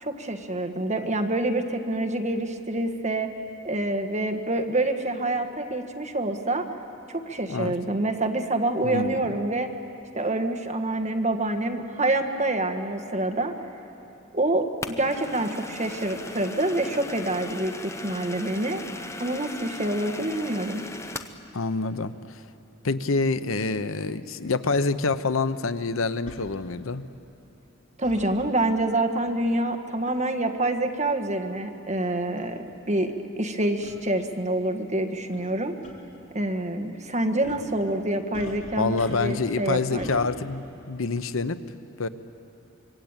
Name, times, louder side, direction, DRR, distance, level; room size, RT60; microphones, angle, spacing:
voice 1, 0.0-3.3 3.6-6.6 7.1-9.7 10.1-13.5 14.3-18.8 19.2-20.8 28.0-32.6 32.9-35.7 36.3-40.2, right 1 dB, 35° right, 5 dB, 1.6 m, -27 dB
voice 2, 8.8-9.3 21.5-22.4 22.8-27.0 38.8-41.6 42.0-42.1, left 3 dB, 80° left, 12 dB, 0.9 m, -27 dB
sound 1, 14.8-21.4, left 2 dB, 15° left, 0.9 m, -38 dB
sound 2, 24.7-24.8 26.3-26.4 28.0-28.3 30.1-30.3 31.1-31.2 32.0-32.1 32.4-32.5 33.8-34.0 35.3-35.5 35.8-35.9 37.4-37.7 38.3-39.5 40.0-40.2, left 1 dB, 35° left, 3.9 m, -42 dB
25.0 x 23.5 x 9.0 m, 2.9 s
head